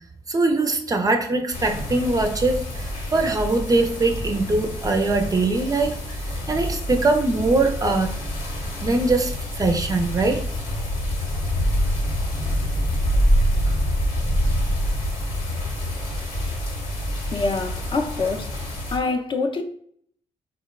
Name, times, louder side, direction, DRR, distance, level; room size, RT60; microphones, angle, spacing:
voice 1, 0.3-6.2 6.5-8.1 8.8-10.4, right 2 dB, 30° right, 0.4 m, -22 dB
sound 1, 1.5-19.0, equal, 65° left, 0.9 m, -26 dB
voice 2, 17.3-19.6, left 3 dB, 40° left, 0.5 m, -26 dB
3.9 x 2.1 x 2.3 m
supercardioid pair, 60°, 13 cm